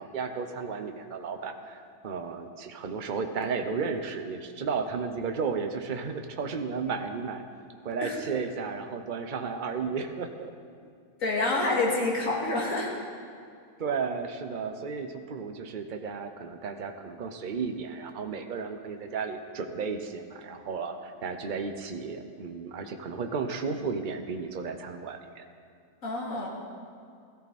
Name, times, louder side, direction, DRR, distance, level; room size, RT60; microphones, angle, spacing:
voice 1, 0.0-7.4 7.8-10.5 13.8-25.4, right 5 dB, 40° right, 6 dB, 0.9 m, -33 dB
voice 2, 11.2-13.0 26.0-26.5, left 2 dB, 65° left, -3 dB, 2.9 m, -27 dB
16.5 x 14.0 x 4.3 m, 2.4 s
omnidirectional pair, 1.5 m